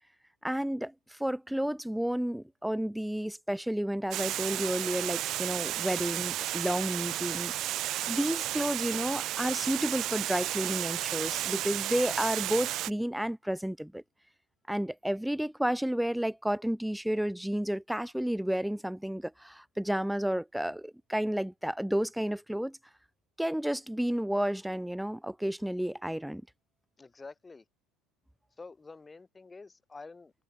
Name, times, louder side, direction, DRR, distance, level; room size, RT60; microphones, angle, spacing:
voice 1, 0.4-7.5 8.1-14.0 14.7-22.8 23.4-26.4, equal, ahead, 0.3 m, -31 dB
Water, 4.1-12.9, right 14 dB, 45° right, 0.6 m, -33 dB
voice 2, 27.0-27.6 28.6-30.4, left 3 dB, 15° left, 2.5 m, -48 dB
figure-of-eight pair, 75°, 0 cm